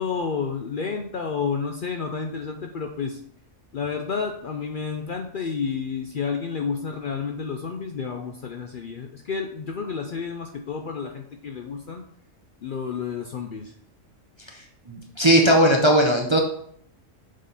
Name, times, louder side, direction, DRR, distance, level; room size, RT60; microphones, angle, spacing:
voice 1, 0.0-3.2 3.7-12.0 12.6-13.7, left 5 dB, 60° left, 4 dB, 0.6 m, -30 dB
voice 2, 14.9-16.4, equal, 30° right, 1 dB, 0.5 m, -18 dB
6.5 x 3.8 x 3.9 m, 0.64 s
omnidirectional pair, 1.3 m